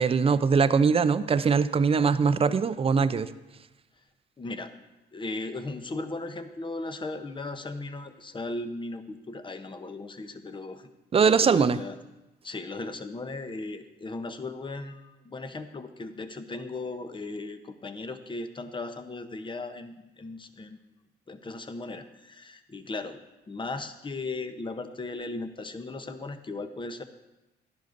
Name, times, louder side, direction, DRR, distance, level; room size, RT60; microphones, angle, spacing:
voice 1, 0.0-3.3 11.1-11.8, right 5 dB, 30° right, 14 dB, 0.4 m, -22 dB
voice 2, 4.4-4.7 5.1-10.9 11.2-12.0 12.4-20.8 21.3-23.2 23.5-27.0, left 3 dB, 25° left, 9 dB, 0.8 m, -37 dB
12.0 x 10.5 x 2.6 m, 1.0 s
cardioid pair, 90°, 20 cm